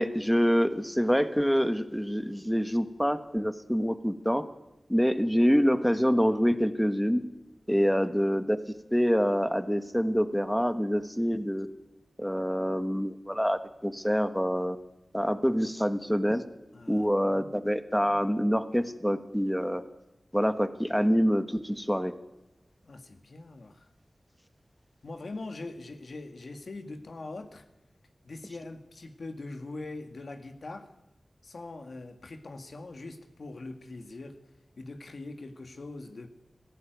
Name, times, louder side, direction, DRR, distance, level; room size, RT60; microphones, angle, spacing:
voice 1, 0.0-4.4 4.9-7.2 7.7-8.6 8.9-11.7 12.2-14.8 15.1-16.4 16.9-19.8 20.3-22.1, equal, ahead, 10 dB, 1.4 m, -26 dB
voice 2, 7.7-8.0 16.7-17.5 22.8-23.9 25.0-27.7 28.2-30.9 31.4-34.4 34.8-36.3, left 2 dB, 85° left, 7 dB, 1.9 m, -42 dB
18.0 x 15.5 x 9.3 m, 0.93 s
wide cardioid pair, 65°, 0 cm